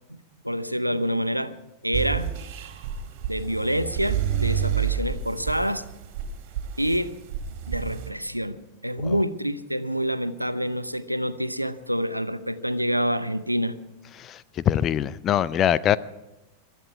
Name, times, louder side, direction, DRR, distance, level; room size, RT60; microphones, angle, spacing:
voice 1, 0.1-1.5 1.8-2.3 3.3-5.8 6.8-7.1 7.7-8.6 8.8-13.8, equal, 90° right, 0.7 m, -27 dB
sound 1, 1.9-8.1, right 9 dB, 45° right, 2.9 m, -29 dB
voice 2, 14.1-16.0, left 10 dB, 30° left, 0.6 m, -23 dB
23.0 x 13.0 x 4.7 m
figure-of-eight pair, 90°, 0 cm